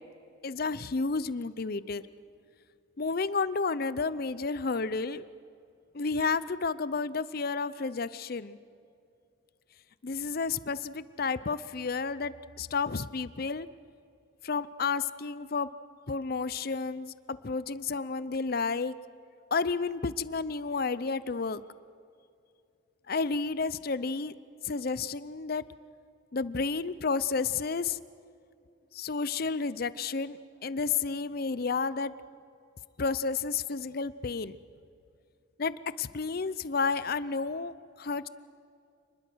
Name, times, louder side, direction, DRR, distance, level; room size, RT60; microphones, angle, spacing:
voice 1, 0.4-2.0 3.0-5.2 5.9-8.6 10.0-13.7 14.4-15.7 16.1-18.9 19.5-21.6 23.1-24.3 24.6-25.6 26.3-28.0 28.9-32.1 33.0-34.6 35.6-38.3, left 4 dB, 50° left, 16 dB, 0.6 m, -31 dB
29.0 x 21.0 x 6.3 m, 2.5 s
head